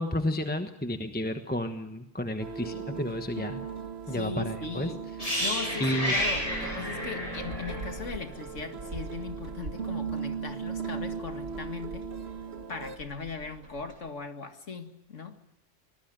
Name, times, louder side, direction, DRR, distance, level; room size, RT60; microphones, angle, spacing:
voice 1, 0.0-3.7 4.1-4.9 5.8-6.1, left 1 dB, 10° left, 6 dB, 1.2 m, -31 dB
sound 1, 2.4-13.0, right 6 dB, 60° right, 1.6 m, -38 dB
voice 2, 4.1-5.1 5.4-12.1 12.7-15.4, left 4 dB, 85° left, 6 dB, 2.4 m, -39 dB
sound 2, 5.2-9.1 9.3-9.5, equal, 30° left, 8.2 m, -31 dB
sound 3, 6.2-14.1, right 2 dB, 85° right, 3.0 m, -45 dB
25.0 x 19.0 x 9.1 m, 0.84 s
omnidirectional pair, 1.2 m